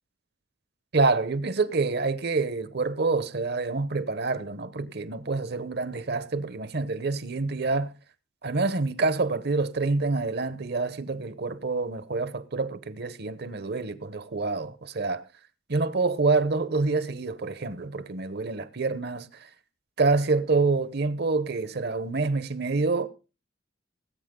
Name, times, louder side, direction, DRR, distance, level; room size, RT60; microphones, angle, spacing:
voice 1, 0.9-7.9 8.4-15.2 15.7-19.5 20.0-23.1, right 3 dB, 55° right, 0.9 m, -27 dB
19.0 x 8.5 x 3.7 m
head